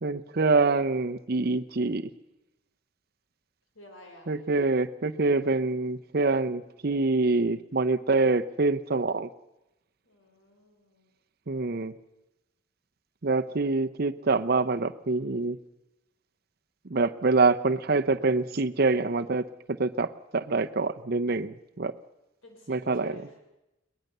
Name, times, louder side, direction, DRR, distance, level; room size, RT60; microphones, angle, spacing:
voice 1, 0.0-2.1 4.3-9.3 11.5-11.9 13.2-15.6 16.9-21.9 22.7-23.1, right 3 dB, 50° right, 9 dB, 0.7 m, -25 dB
voice 2, 3.7-4.3 10.0-11.1 22.4-23.4, left 2 dB, 80° left, 2 dB, 4.9 m, -51 dB
22.5 x 19.0 x 6.7 m, 0.93 s
head